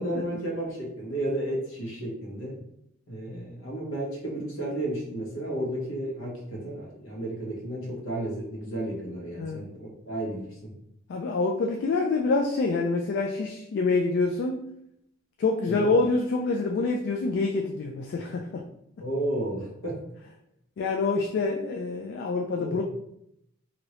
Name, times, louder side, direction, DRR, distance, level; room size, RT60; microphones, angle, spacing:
voice 1, 0.0-2.5 3.1-10.7 15.7-15.9 19.0-20.0 21.1-21.2 22.5-22.8, right 1 dB, 75° left, -3 dB, 1.1 m, -32 dB
voice 2, 11.1-14.7 15.4-18.6 20.8-22.8, left 3 dB, 55° left, 2 dB, 0.3 m, -26 dB
2.9 x 2.7 x 3.0 m, 0.77 s
head